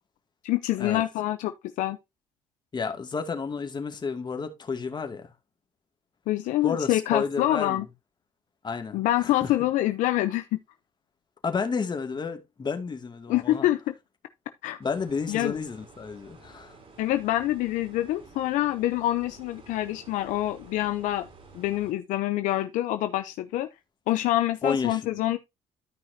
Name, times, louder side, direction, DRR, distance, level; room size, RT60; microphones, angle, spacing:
voice 1, 0.4-1.5 1.8-2.0 6.3-7.8 8.9-10.6 13.3-13.9 14.6-14.8 15.3-15.6 17.0-21.3 21.5-23.7 24.1-25.4, left 14 dB, 80° left, 0.8 m, -26 dB
voice 2, 2.7-5.3 6.6-7.8 8.6-9.5 11.4-13.7 14.8-16.8 24.6-25.0, left 5 dB, 35° left, 2.3 m, -31 dB
sound 1, 14.8-21.9, right 3 dB, 45° right, 5.3 m, -52 dB
13.0 x 5.7 x 2.8 m
supercardioid pair, 75°, 13 cm